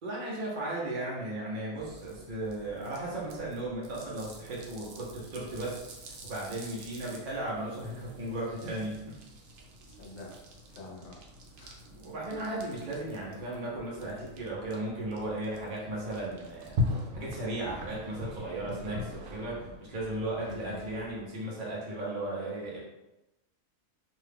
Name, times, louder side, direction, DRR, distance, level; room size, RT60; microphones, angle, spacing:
voice 1, 0.0-9.2 11.9-22.8, right 1 dB, 45° right, -5 dB, 0.7 m, -36 dB
sound 1, 1.8-21.2, left 2 dB, 85° right, 1.0 m, -42 dB
voice 2, 9.9-11.2 11.5-11.8 20.4-20.8, left 1 dB, 65° left, 0 dB, 0.9 m, -46 dB
2.7 x 2.3 x 3.3 m, 0.97 s
omnidirectional pair, 1.4 m